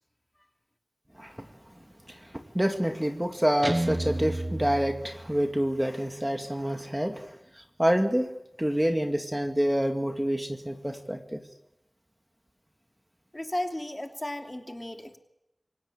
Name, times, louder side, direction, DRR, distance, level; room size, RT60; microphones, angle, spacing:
voice 1, 2.3-7.3 7.8-8.3 8.6-11.4, equal, 10° right, 4 dB, 2.3 m, -27 dB
Guitar, 3.6-5.7, right 1 dB, 25° right, 0.9 m, -32 dB
voice 2, 13.3-15.2, left 1 dB, 25° left, 4 dB, 3.0 m, -34 dB
27.0 x 17.5 x 8.8 m, 0.87 s
wide cardioid pair, 45°, 0 cm